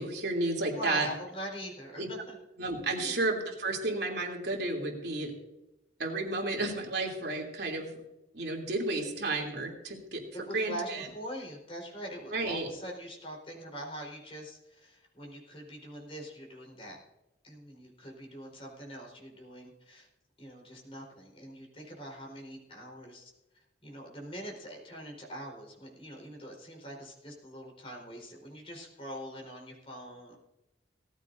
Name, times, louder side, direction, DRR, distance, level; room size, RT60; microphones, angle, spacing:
voice 1, 0.0-1.1 2.0-2.1 2.6-5.3 6.0-8.0 8.3-11.1 12.3-12.7, right 2 dB, 65° right, 0 dB, 3.0 m, -32 dB
voice 2, 0.7-2.4 3.0-3.1 10.3-17.0 17.4-20.1 20.4-23.3 23.8-30.3, equal, 30° left, -1 dB, 4.2 m, -43 dB
18.5 x 14.5 x 2.7 m, 0.94 s
head